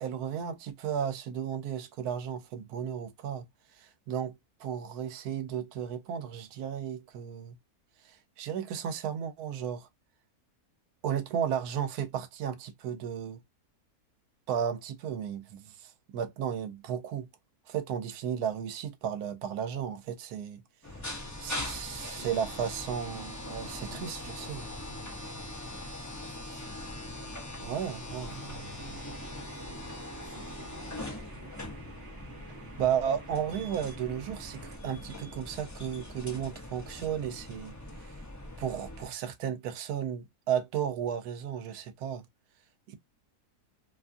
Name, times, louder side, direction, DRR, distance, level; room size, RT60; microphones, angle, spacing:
voice 1, 0.0-3.4 3.7-7.6 8.0-9.9 11.0-13.4 14.5-17.3 17.7-20.6 21.4-24.6 27.6-28.3 32.8-37.7 38.0-38.2 38.6-42.2 42.9-43.0, right 8 dB, 85° right, 1.1 m, -34 dB
voice 2, 20.8-21.5 21.9-22.6 23.0-23.3 23.7-27.4 28.0-31.7, left 4 dB, 45° left, 1.1 m, -54 dB
sound 1, 20.8-39.1, left 1 dB, 30° left, 0.3 m, -42 dB
sound 2, 28.3-34.8, right 6 dB, 60° right, 0.9 m, -50 dB
2.8 x 2.4 x 2.4 m
omnidirectional pair, 1.6 m